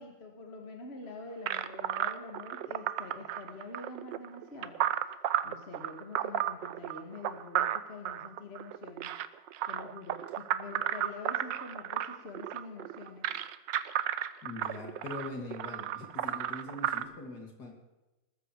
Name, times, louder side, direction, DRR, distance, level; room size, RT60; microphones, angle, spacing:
voice 1, 0.0-4.8 5.4-9.1 9.7-13.3, left 3 dB, 35° left, 3 dB, 2.1 m, -46 dB
sound 1, 1.5-17.0, right 11 dB, 85° right, 1.4 m, -33 dB
voice 2, 14.4-17.7, left 2 dB, 60° left, 2 dB, 3.1 m, -42 dB
20.5 x 13.5 x 4.8 m, 1.0 s
omnidirectional pair, 1.9 m